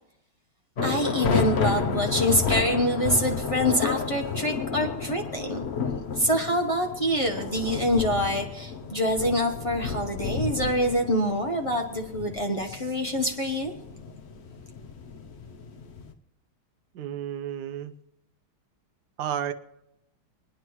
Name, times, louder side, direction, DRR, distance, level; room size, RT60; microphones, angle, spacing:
sound 1, 0.8-16.1, left 5 dB, 90° left, 0.5 m, -31 dB
voice 1, 0.8-5.6 6.1-13.7, equal, 40° left, 2 dB, 0.4 m, -26 dB
voice 2, 16.9-17.9 19.2-19.5, right 10 dB, 65° right, 11 dB, 1.1 m, -31 dB
27.0 x 9.6 x 3.1 m, 0.86 s
omnidirectional pair, 2.3 m